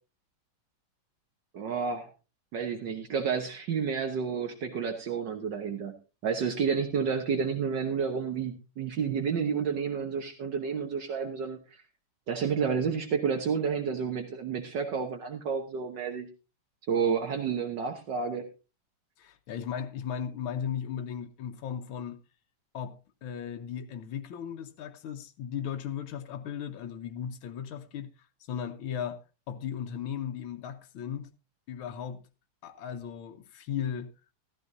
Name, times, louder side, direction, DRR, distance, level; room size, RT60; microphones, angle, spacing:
voice 1, 1.5-2.1 2.5-5.9 6.2-11.8 12.3-16.3 16.9-18.4, right 6 dB, 65° right, 1.7 m, -30 dB
voice 2, 19.2-22.2 22.7-28.1 28.5-29.2 29.5-31.3 31.7-32.2 32.6-34.1, left 8 dB, 85° left, 1.7 m, -36 dB
14.0 x 14.0 x 2.6 m
omnidirectional pair, 2.2 m